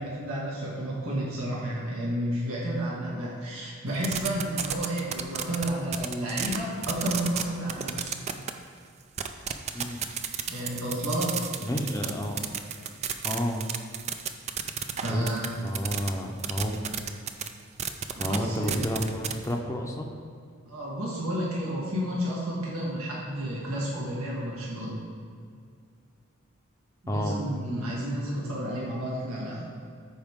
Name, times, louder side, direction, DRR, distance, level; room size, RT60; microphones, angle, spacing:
voice 1, 0.0-8.1 10.5-11.5 14.9-15.5 18.2-18.8 20.7-25.0 27.0-29.7, right 1 dB, 85° right, -5 dB, 1.8 m, -31 dB
sound 1, 4.0-6.6 6.8-7.4 7.7-8.5 9.2-16.1 16.4-17.5 17.8-18.4 18.6-19.5, right 8 dB, 30° right, 0.4 m, -32 dB
voice 2, 9.7-10.0 11.6-12.5 13.2-13.6 15.1-15.4 15.6-17.1 18.1-20.1 27.1-27.4, equal, 15° left, 1 dB, 0.7 m, -31 dB
13.5 x 4.8 x 3.7 m, 2.2 s
head